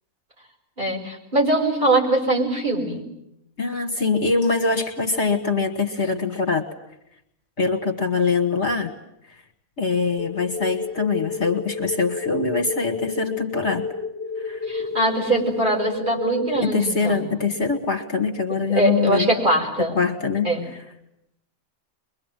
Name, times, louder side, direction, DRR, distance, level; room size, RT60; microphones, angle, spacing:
voice 1, 0.8-3.0 14.7-17.3 18.7-19.9 20.4-20.6, right 1 dB, 35° right, -1 dB, 5.5 m, -22 dB
voice 2, 3.6-6.6 7.6-8.9 9.8-13.9 14.4-14.7 16.6-19.3 19.8-20.5, left 4 dB, 50° left, 4 dB, 1.9 m, -23 dB
sound 1, 10.2-16.6, left 3 dB, 15° left, 0.7 m, -30 dB
23.5 x 23.0 x 9.1 m, 0.82 s
omnidirectional pair, 1.5 m